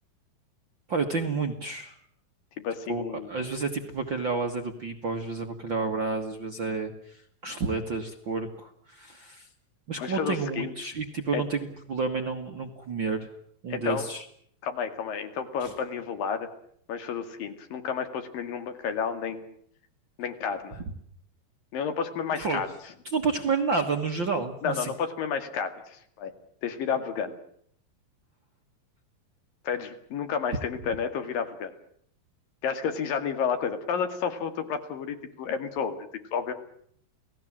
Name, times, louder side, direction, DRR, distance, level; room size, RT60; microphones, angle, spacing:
voice 1, 0.9-2.0 2.9-9.5 9.9-13.3 13.6-14.2 15.6-15.7 22.4-22.6 23.1-24.9, right 4 dB, 45° right, 5 dB, 1.7 m, -30 dB
voice 2, 2.6-3.3 10.0-10.7 11.3-11.4 13.7-14.0 14.6-16.5 16.9-19.5 20.2-20.8 21.7-22.7 24.6-26.3 26.6-27.4 29.6-31.7 32.6-36.5, left 6 dB, 70° left, 8 dB, 3.8 m, -31 dB
29.5 x 18.5 x 7.5 m, 0.66 s
omnidirectional pair, 4.3 m